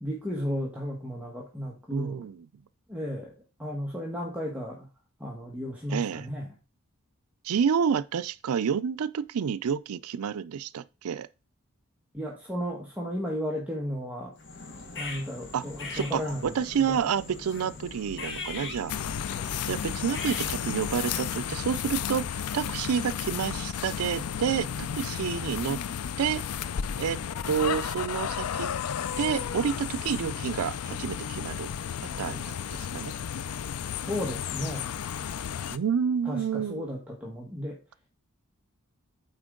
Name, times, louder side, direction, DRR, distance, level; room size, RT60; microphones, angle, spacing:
voice 1, 0.0-2.3 2.9-3.3 3.6-4.9 5.2-6.5 12.1-14.3 15.0-17.0 34.0-34.9 36.2-37.8, equal, 5° right, 1.3 m, -34 dB
voice 2, 1.9-2.5 5.9-6.3 7.4-11.3 15.5-15.6 15.9-18.9 19.7-22.3 22.5-24.7 24.9-25.8 26.2-26.4 27.0-27.2 27.5-28.7 29.2-31.7 32.2-33.1 35.7-36.9, right 7 dB, 80° right, 0.4 m, -29 dB
sound 1, 14.4-21.6, left 3 dB, 55° left, 1.4 m, -41 dB
sound 2, 18.9-35.8, left 8 dB, 90° left, 0.4 m, -33 dB
8.9 x 4.4 x 3.7 m
head